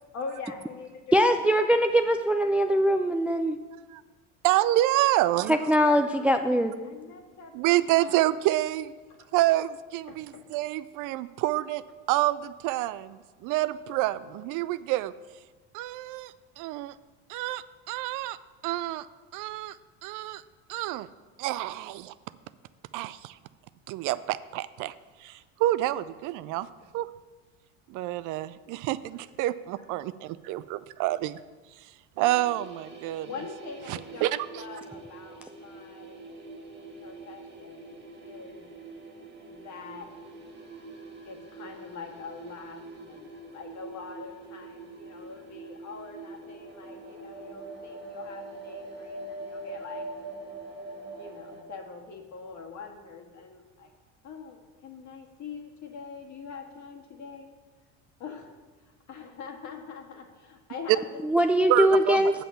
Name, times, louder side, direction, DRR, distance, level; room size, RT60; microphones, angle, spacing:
voice 1, 0.1-3.0 5.5-6.4 6.8-8.2 9.1-9.2 10.1-10.4 26.7-27.0 33.2-36.3 37.0-37.9 38.2-38.7 39.5-40.1 41.2-50.1 51.2-53.9 54.2-57.5 58.2-58.5 59.1-61.2, left 5 dB, 55° left, 3 dB, 1.7 m, -43 dB
voice 2, 1.1-3.6 5.5-6.7 61.2-62.4, equal, 5° right, 6 dB, 0.4 m, -22 dB
voice 3, 4.4-5.6 7.5-8.9 9.3-11.8 12.1-15.1 15.7-16.9 17.3-18.4 18.6-19.1 19.3-19.8 20.0-20.4 20.7-21.1 21.4-22.1 22.9-23.4 23.9-24.9 25.2-26.7 26.9-27.1 27.9-31.4 32.2-33.3 33.9-34.3 61.7-62.4, right 15 dB, 60° right, 15 dB, 0.5 m, -28 dB
sound 1, 32.2-51.6, right 2 dB, 30° right, 1.6 m, -44 dB
8.2 x 5.7 x 6.9 m, 1.3 s
supercardioid pair, 85°, 36 cm